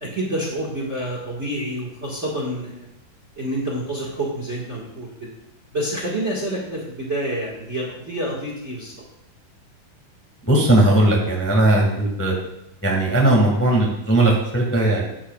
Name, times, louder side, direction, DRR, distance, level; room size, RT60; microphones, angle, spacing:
voice 1, 0.0-2.9 3.4-5.3 5.7-8.9, right 1 dB, 30° right, -3 dB, 1.4 m, -28 dB
voice 2, 10.4-12.3 12.8-15.1, right 1 dB, 5° left, -2 dB, 1.0 m, -18 dB
13.0 x 10.0 x 2.4 m, 0.85 s
omnidirectional pair, 3.7 m